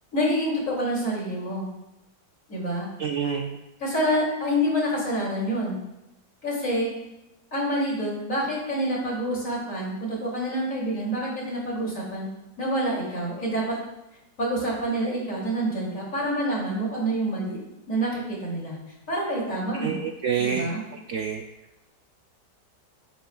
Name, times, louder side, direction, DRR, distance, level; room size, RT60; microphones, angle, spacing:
voice 1, 0.1-1.7 2.5-2.9 3.8-5.8 6.4-6.9 7.5-12.3 12.6-13.8 14.4-17.6 17.9-18.8 19.1-20.0 20.4-20.8, equal, 45° left, -4 dB, 3.0 m, -27 dB
voice 2, 3.0-3.6 19.8-20.7 21.1-21.4, right 7 dB, 85° right, 4 dB, 0.7 m, -27 dB
10.5 x 8.7 x 2.3 m, 0.93 s
omnidirectional pair, 1.9 m